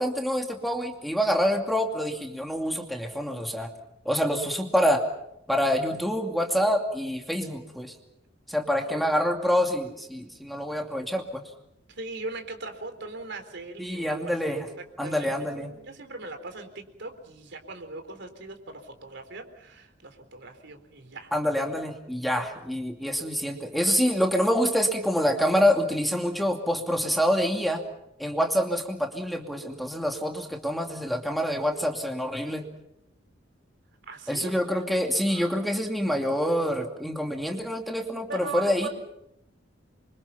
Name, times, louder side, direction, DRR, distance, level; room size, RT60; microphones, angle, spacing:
voice 1, 0.0-3.7 4.0-5.1 5.5-7.9 8.5-11.4 13.8-14.7 15.0-15.8 21.3-27.8 28.2-32.7 34.3-38.9, equal, ahead, 2 dB, 2.5 m, -26 dB
voice 2, 11.9-14.7 15.0-21.3 22.4-22.6 34.1-34.5 35.3-35.6 38.3-38.9, right 3 dB, 65° right, 7 dB, 4.1 m, -40 dB
28.0 x 25.0 x 5.9 m, 0.80 s
head